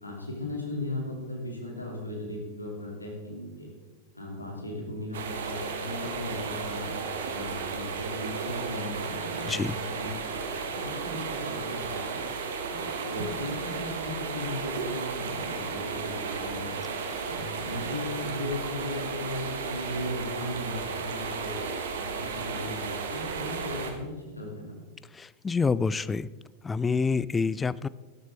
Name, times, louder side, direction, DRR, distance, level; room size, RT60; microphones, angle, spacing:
voice 1, 0.0-3.7 4.1-6.9 7.3-10.1 10.4-12.2 12.7-16.7 17.2-21.5 21.9-24.7, left 1 dB, 85° left, 0 dB, 2.7 m, -37 dB
sound 1, 5.1-23.9, right 5 dB, 60° right, 1.6 m, -34 dB
voice 2, 9.5-9.8 17.1-17.3 25.1-26.3 26.6-27.9, left 4 dB, 15° left, 19 dB, 0.3 m, -27 dB
13.0 x 12.5 x 3.7 m, 1.2 s
figure-of-eight pair, 90°, 0 cm